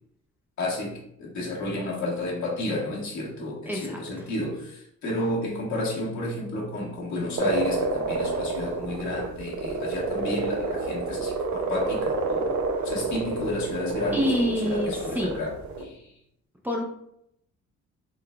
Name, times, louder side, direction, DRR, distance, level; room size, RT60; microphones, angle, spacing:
voice 1, 0.6-16.2, left 2 dB, 70° left, -4 dB, 1.5 m, -31 dB
voice 2, 3.7-4.3 14.1-15.3 16.6-16.8, equal, 5° right, -1 dB, 0.6 m, -27 dB
sound 1, 7.4-15.8, right 3 dB, 70° right, 0.6 m, -29 dB
3.9 x 3.2 x 2.3 m, 0.74 s
cardioid pair, 90°, 30 cm